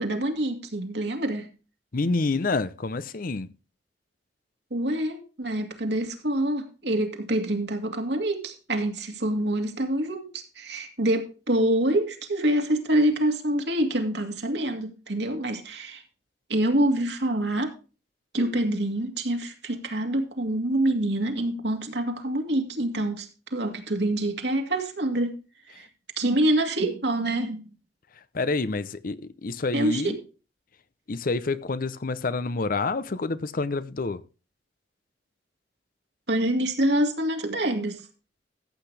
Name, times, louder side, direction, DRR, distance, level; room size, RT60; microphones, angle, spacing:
voice 1, 0.0-1.5 4.7-16.0 16.5-17.8 18.3-25.4 25.7-25.9 26.2-27.7 29.7-30.2 36.3-38.0, right 1 dB, 70° right, 2.3 m, -26 dB
voice 2, 1.9-3.5 28.3-30.2 31.1-34.2, left 3 dB, 55° left, 0.7 m, -28 dB
14.5 x 8.1 x 3.4 m
head